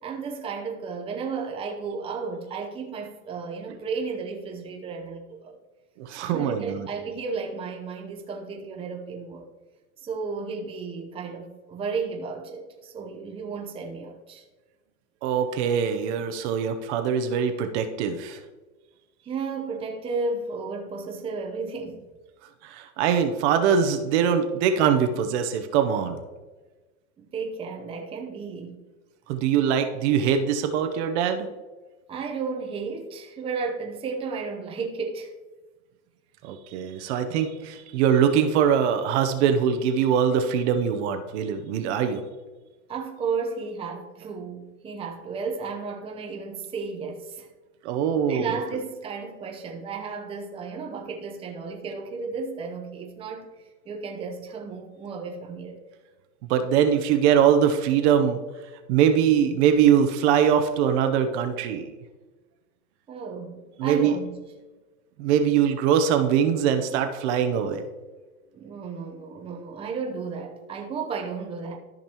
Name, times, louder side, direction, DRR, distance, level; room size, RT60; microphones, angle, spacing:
voice 1, 0.0-5.5 6.1-9.5 10.0-14.4 19.2-22.0 27.2-28.8 32.1-35.3 42.9-47.5 48.3-55.8 63.1-64.3 68.5-71.8, right 4 dB, 15° right, 0.7 m, -33 dB
voice 2, 6.0-6.9 15.2-18.4 22.6-26.2 29.3-31.5 36.4-42.2 47.8-48.5 56.5-58.4 58.9-61.9 63.8-64.1 65.2-67.8, right 8 dB, 50° right, 0.8 m, -22 dB
13.5 x 5.3 x 2.9 m
supercardioid pair, 135°, 44 cm